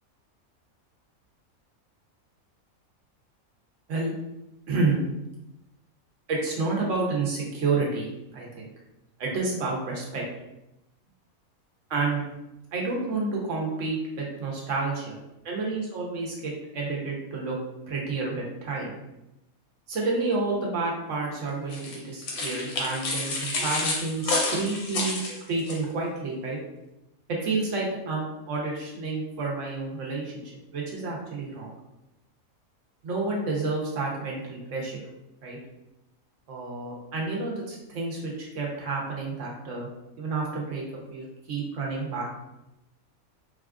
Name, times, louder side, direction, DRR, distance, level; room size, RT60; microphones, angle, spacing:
voice 1, 4.7-5.0 6.3-8.1 8.3-8.7 9.2-10.2 11.9-12.2 12.7-15.2 15.4-17.6 17.9-18.9 19.9-25.2 25.5-26.6 27.3-30.4 30.7-31.7 33.0-35.0 35.4-35.6 36.5-39.9 40.2-40.8 41.1-42.3, right 3 dB, 65° right, -2 dB, 1.1 m, -29 dB
sound 1, 21.7-25.8, left 2 dB, 85° left, 1.2 m, -29 dB
4.2 x 2.3 x 2.4 m, 0.91 s
omnidirectional pair, 1.5 m